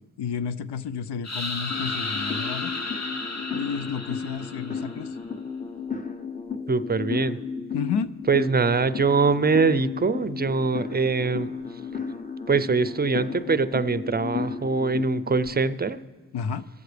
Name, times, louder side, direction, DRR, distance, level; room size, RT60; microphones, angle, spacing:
voice 1, 0.2-2.7 3.5-5.1 7.7-8.1 16.3-16.6, left 6 dB, 80° left, 13 dB, 0.6 m, -31 dB
sound 1, 1.2-5.1, left 3 dB, 40° left, 1.2 m, -33 dB
sound 2, 1.7-15.5, left 5 dB, 20° left, 0.8 m, -34 dB
voice 2, 6.7-7.4 8.3-11.6 12.5-16.0, right 4 dB, 25° right, 13 dB, 0.5 m, -23 dB
20.5 x 7.8 x 3.3 m, 1.4 s
cardioid pair, 45°, 40 cm